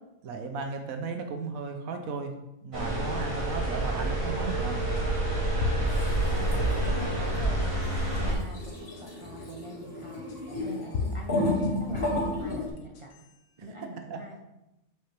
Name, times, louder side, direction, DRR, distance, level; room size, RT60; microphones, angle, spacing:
voice 1, 0.2-2.3 2.6-4.9 13.6-14.2, right 4 dB, 80° right, 5 dB, 1.2 m, -35 dB
sound 1, 2.7-8.3, right 1 dB, 25° right, 1.5 m, -28 dB
sound 2, 3.6-3.7 4.9-5.0 5.6-6.9 7.4-8.0 9.0-9.1 10.3-10.4 10.9-12.2 12.8-13.3, left 4 dB, 75° left, 1.3 m, -35 dB
sound 3, 5.9-6.9 7.1-7.4 7.6-12.7, left 1 dB, 40° left, 2.3 m, -32 dB
voice 2, 6.2-13.3 13.6-14.4, right 1 dB, 45° right, 0 dB, 0.4 m, -44 dB
6.8 x 5.6 x 3.3 m, 0.93 s
omnidirectional pair, 1.5 m